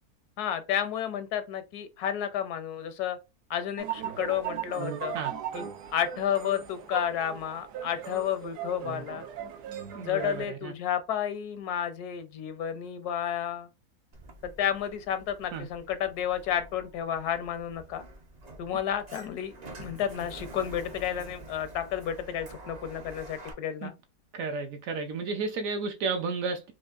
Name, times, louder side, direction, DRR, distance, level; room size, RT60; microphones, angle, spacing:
voice 1, 0.4-3.2 3.5-5.2 5.5-5.6 5.9-9.2 10.0-13.7 14.4-18.0 18.6-23.9, left 9 dB, 80° left, 1.2 m, -31 dB
sound 1, 3.8-10.4, right 9 dB, 85° right, 1.2 m, -38 dB
voice 2, 9.9-10.7 15.5-15.7 23.8-23.9 24.3-26.7, right 4 dB, 65° right, 0.9 m, -32 dB
Sliding door, 14.1-23.5, right 2 dB, 50° right, 0.5 m, -47 dB
4.5 x 2.5 x 2.4 m
omnidirectional pair, 1.7 m